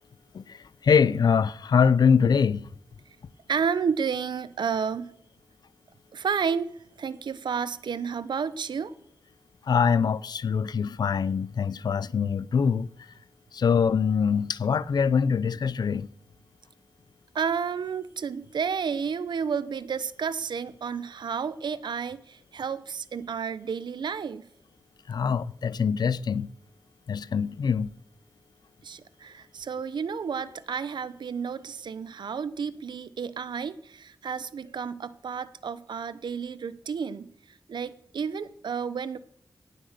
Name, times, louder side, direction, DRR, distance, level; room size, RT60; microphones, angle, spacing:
voice 1, 0.3-2.7 9.7-12.9 13.5-16.1 25.1-26.5 27.1-27.9, left 6 dB, 65° left, 0.5 m, -24 dB
voice 2, 3.5-5.1 6.1-6.7 7.0-8.9 17.3-24.4 28.8-37.3 37.7-39.2, right 6 dB, 90° right, 0.8 m, -31 dB
17.5 x 7.7 x 6.6 m
wide cardioid pair, 155°, 8 cm